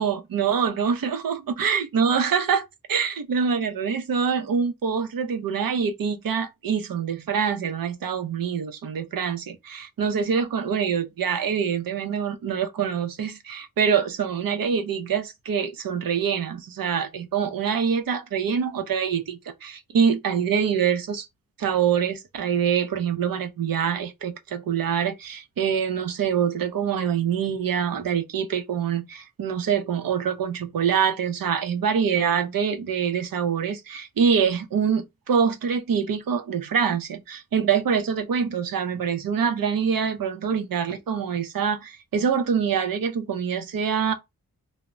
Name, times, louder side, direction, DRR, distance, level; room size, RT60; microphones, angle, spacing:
voice 1, 0.0-21.3 21.6-44.1, right 7 dB, 75° right, 0.6 m, -25 dB
2.1 x 2.0 x 3.5 m
wide cardioid pair, 135°, 35 cm